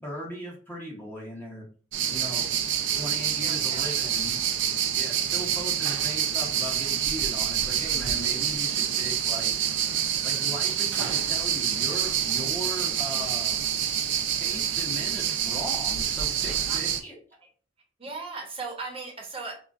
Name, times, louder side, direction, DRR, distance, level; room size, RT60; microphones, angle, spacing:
voice 1, 0.0-1.7 2.1-2.5 2.8-4.4 4.9-9.6 10.2-13.7 14.3-17.1, equal, 10° left, -4 dB, 0.7 m, -38 dB
sound 1, 1.9-17.0, right 9 dB, 80° right, 0.4 m, -27 dB
voice 2, 3.4-4.0 16.7-16.8 17.4-17.5 18.0-19.5, right 3 dB, 30° right, 0 dB, 0.8 m, -37 dB
3.7 x 2.1 x 2.4 m, 0.41 s
head